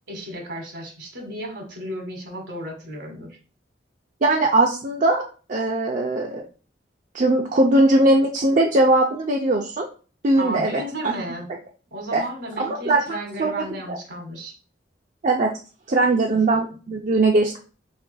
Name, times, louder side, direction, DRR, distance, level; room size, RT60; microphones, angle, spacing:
voice 1, 0.1-3.3 10.4-11.5 11.9-14.5, right 1 dB, 70° right, 1 dB, 1.7 m, -33 dB
voice 2, 4.2-5.2 5.5-6.4 7.1-9.9 10.2-11.1 12.1-12.2 12.6-14.0 15.2-15.5 15.9-17.6, right 2 dB, 45° right, 0 dB, 0.5 m, -20 dB
4.9 x 4.2 x 2.2 m, 0.36 s
head